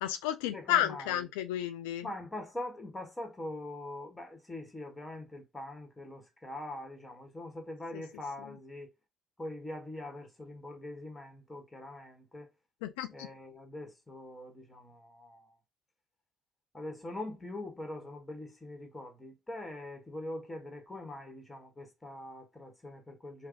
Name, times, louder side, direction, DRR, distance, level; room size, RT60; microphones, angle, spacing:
voice 1, 0.0-2.1 7.9-8.0 8.4-8.6 12.8-13.3, left 12 dB, 90° left, 0.3 m, -32 dB
voice 2, 0.5-1.2 2.0-8.9 9.4-12.5 13.1-15.5 16.7-23.5, left 1 dB, 15° left, 1.5 m, -43 dB
3.3 x 2.3 x 3.8 m
supercardioid pair, 70°, 0 cm